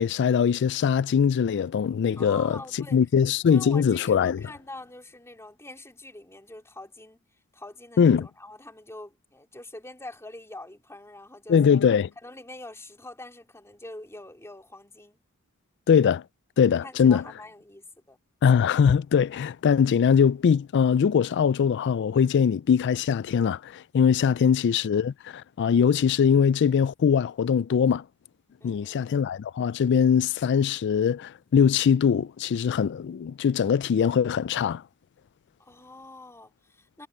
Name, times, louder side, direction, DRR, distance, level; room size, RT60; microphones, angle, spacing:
voice 1, 0.0-2.6 2.9-4.4 8.0-8.3 11.5-12.1 15.9-16.2 16.6-17.2 18.4-28.0 28.6-34.8, left 7 dB, 55° left, 0.3 m, -22 dB
voice 2, 2.2-3.0 3.4-7.2 7.5-11.6 12.2-15.2 16.8-18.2 24.3-24.6 28.6-29.1 35.6-37.1, left 2 dB, 15° left, 3.5 m, -44 dB
head